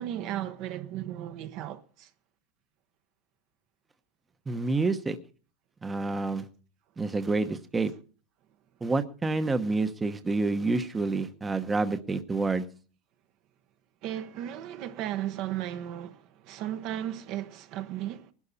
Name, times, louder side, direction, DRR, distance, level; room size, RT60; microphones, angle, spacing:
voice 1, 0.0-2.1 14.0-18.3, right 12 dB, 50° right, 1.1 m, -35 dB
voice 2, 4.5-5.2 5.8-6.4 7.0-7.9 8.8-12.6, right 3 dB, 15° right, 1.0 m, -28 dB
19.5 x 12.0 x 4.2 m
supercardioid pair, 130°, 0 cm